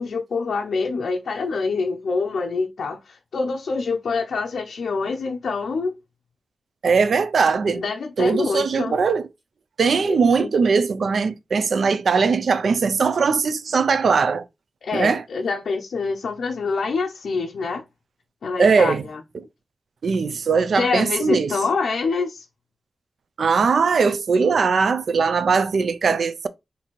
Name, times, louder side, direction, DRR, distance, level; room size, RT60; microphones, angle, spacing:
voice 1, 0.0-5.9 7.7-8.9 10.1-10.5 14.8-17.8 18.4-19.2 20.8-22.5, left 4 dB, 80° left, 0.4 m, -26 dB
voice 2, 6.8-7.8 8.2-9.3 9.8-14.4 14.9-15.2 18.6-19.1 19.3-19.4 20.0-21.6 23.4-26.5, right 5 dB, 65° right, 0.4 m, -20 dB
3.0 x 2.6 x 4.1 m
wide cardioid pair, 150°, 0 cm